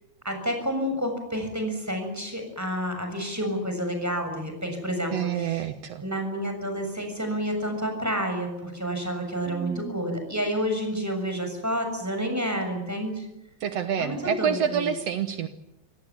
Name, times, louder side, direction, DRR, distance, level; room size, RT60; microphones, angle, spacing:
voice 1, 0.2-5.7 6.0-13.3 14.0-14.9, equal, 5° right, 5 dB, 6.3 m, -29 dB
voice 2, 5.1-6.0 9.5-10.0 13.6-15.5, right 8 dB, 75° right, 9 dB, 1.5 m, -28 dB
26.0 x 18.0 x 9.7 m, 0.90 s
omnidirectional pair, 4.6 m